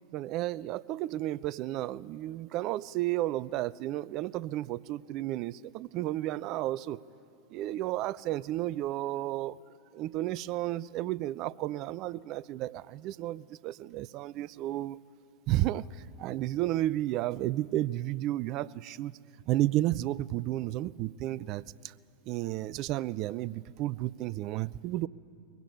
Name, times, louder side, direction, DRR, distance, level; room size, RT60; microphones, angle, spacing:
voice 1, 0.1-7.0 7.5-9.6 9.9-15.0 15.5-19.2 19.5-21.9 22.3-25.1, right 15 dB, 40° right, 21 dB, 0.4 m, -32 dB
22.5 x 16.0 x 9.7 m, 2.7 s
figure-of-eight pair, 90°, 0 cm